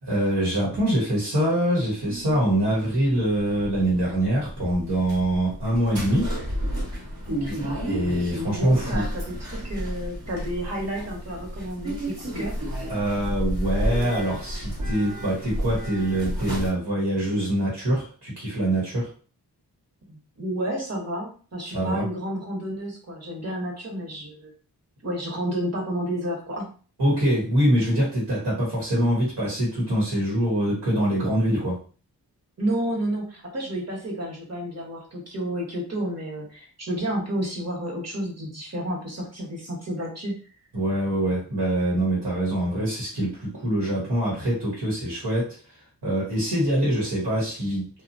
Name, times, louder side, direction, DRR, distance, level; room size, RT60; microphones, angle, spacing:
voice 1, 0.0-6.3 6.8-7.0 7.5-9.1 12.9-19.1 21.7-22.1 27.0-31.8 40.7-47.9, right 1 dB, 80° right, -5 dB, 1.3 m, -24 dB
sound 1, 2.0-16.7, equal, 60° right, 1.3 m, -31 dB
voice 2, 7.3-7.7 8.5-12.5 20.1-24.5 25.0-26.7 32.6-40.4, right 1 dB, 40° right, -2 dB, 1.2 m, -31 dB
2.7 x 2.4 x 2.6 m, 0.38 s
wide cardioid pair, 65°, 40 cm